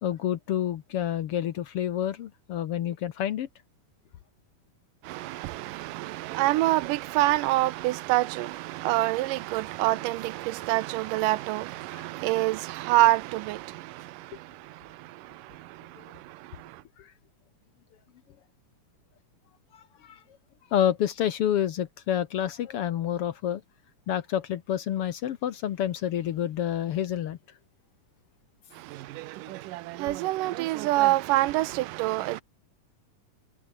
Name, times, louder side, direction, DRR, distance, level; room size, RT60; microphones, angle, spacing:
voice 1, 0.0-3.5 11.9-12.0 17.0-17.1 19.7-20.2 20.7-23.6 24.1-27.4, left 10 dB, 65° left, 1.5 m, -28 dB
voice 2, 5.0-16.8 28.7-32.4, right 17 dB, 85° right, 2.4 m, -27 dB
omnidirectional pair, 3.7 m